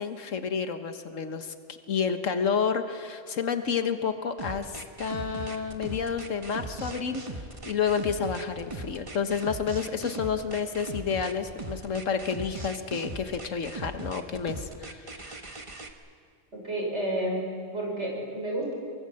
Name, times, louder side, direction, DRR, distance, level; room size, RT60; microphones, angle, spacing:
voice 1, 0.0-7.2 7.6-15.2, left 6 dB, 85° left, 8 dB, 1.6 m, -30 dB
sound 1, 4.4-15.9, right 2 dB, 25° right, 1.4 m, -39 dB
voice 2, 16.5-18.7, right 1 dB, 65° right, -1 dB, 5.9 m, -31 dB
23.5 x 22.5 x 7.7 m, 2.2 s
omnidirectional pair, 1.3 m